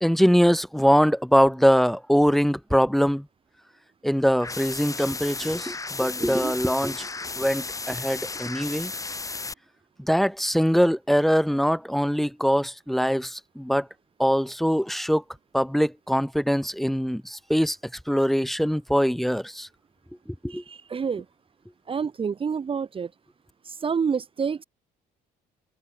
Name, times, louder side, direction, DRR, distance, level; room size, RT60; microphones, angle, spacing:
voice 1, 0.0-3.3 4.0-7.0 7.4-8.9 10.0-13.9 14.2-15.2 15.5-17.8 18.1-19.7 20.4-20.6, equal, ahead, 2.0 m, -22 dB
sound 1, 4.4-9.5, left 3 dB, 20° left, 3.2 m, -34 dB
voice 2, 6.2-6.5 20.5-21.2 21.9-23.1 23.6-24.6, right 6 dB, 30° right, 1.6 m, -28 dB
cardioid pair, 110°, 17 cm